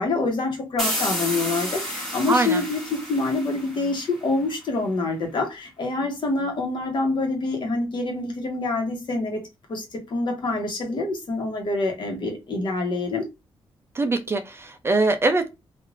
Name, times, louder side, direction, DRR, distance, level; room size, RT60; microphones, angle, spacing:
voice 1, 0.0-9.4 9.7-13.3, left 3 dB, 55° left, 1.1 m, -26 dB
sound 1, 0.8-4.4, equal, 5° left, 1.5 m, -31 dB
voice 2, 2.3-2.6 14.0-15.5, right 2 dB, 25° right, 0.4 m, -22 dB
3.2 x 2.5 x 2.4 m
wide cardioid pair, 140°, 9 cm